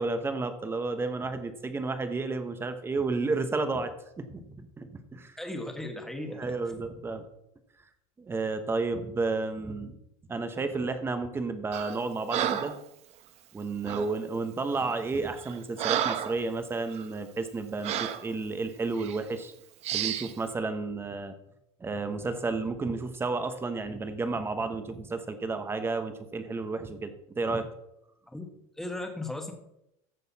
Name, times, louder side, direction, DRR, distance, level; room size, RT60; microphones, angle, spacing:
voice 1, 0.0-3.9 4.2-5.4 6.4-7.2 8.2-10.0 10.3-12.7 13.5-19.5 19.9-21.3 21.8-27.7, right 3 dB, 15° right, 9 dB, 1.1 m, -32 dB
voice 2, 5.4-6.5 28.3-28.5 28.8-29.5, left 2 dB, ahead, 4 dB, 1.5 m, -36 dB
Breathing, 11.7-12.0 12.3-12.8 13.8-14.1 14.8-15.0 15.4-16.4 16.9-17.1 17.8-18.2 19.0-19.2 19.8-20.3, right 10 dB, 40° right, 0.9 m, -31 dB
14.5 x 6.6 x 4.2 m, 0.81 s
cardioid pair, 155°, 17 cm